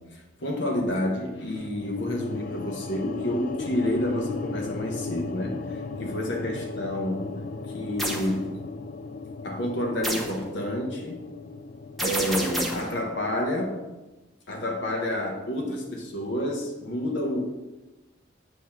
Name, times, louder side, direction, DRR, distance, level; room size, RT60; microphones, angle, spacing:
voice 1, 0.1-7.4 7.7-8.6 9.4-11.2 12.0-13.8 14.5-17.4, left 1 dB, 75° left, 2 dB, 1.0 m, -29 dB
sound 1, 1.5-13.8, left 4 dB, 40° left, 0.3 m, -36 dB
sound 2, 8.0-8.3 10.0-10.4 12.0-12.9, equal, ahead, 0.8 m, -29 dB
8.6 x 3.1 x 5.8 m, 1.1 s
head